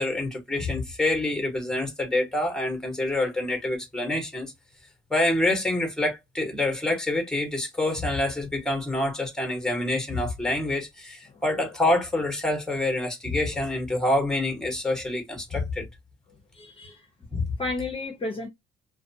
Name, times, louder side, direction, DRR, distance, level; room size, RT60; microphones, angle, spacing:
voice 1, 0.0-4.5 5.1-15.9 17.3-17.5, left 2 dB, 5° left, 1.1 m, -26 dB
voice 2, 16.5-17.1 17.6-18.5, left 2 dB, 25° left, 0.7 m, -32 dB
2.3 x 2.3 x 2.7 m
cardioid pair, 90°, 20 cm